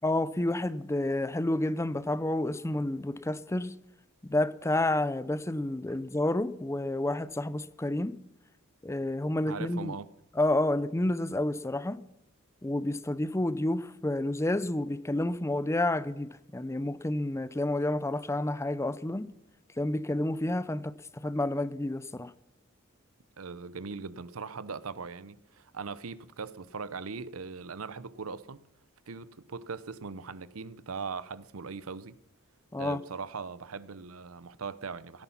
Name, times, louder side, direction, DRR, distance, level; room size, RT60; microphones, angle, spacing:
voice 1, 0.0-3.8 4.2-8.2 8.8-9.9 10.4-12.0 12.6-19.3 19.8-22.3 32.7-33.0, left 1 dB, 15° left, 0.6 m, -30 dB
voice 2, 9.4-10.1 23.4-28.7 29.1-32.2 32.8-35.2, right 5 dB, 75° right, 0.8 m, -40 dB
17.0 x 14.0 x 5.8 m
head